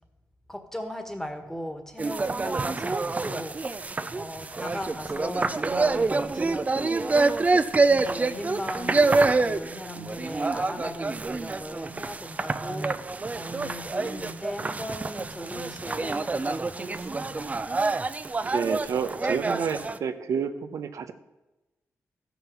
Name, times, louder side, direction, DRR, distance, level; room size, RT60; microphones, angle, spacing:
voice 1, 0.5-3.6 4.1-7.3 7.8-13.0 13.3-17.6, left 1 dB, 10° left, 5 dB, 1.6 m, -38 dB
sound 1, 2.0-20.0, right 3 dB, 30° right, 0.5 m, -27 dB
voice 2, 18.4-21.1, right 6 dB, 85° right, 8 dB, 0.8 m, -29 dB
14.0 x 6.0 x 7.0 m, 1.0 s
wide cardioid pair, 110°, 5 cm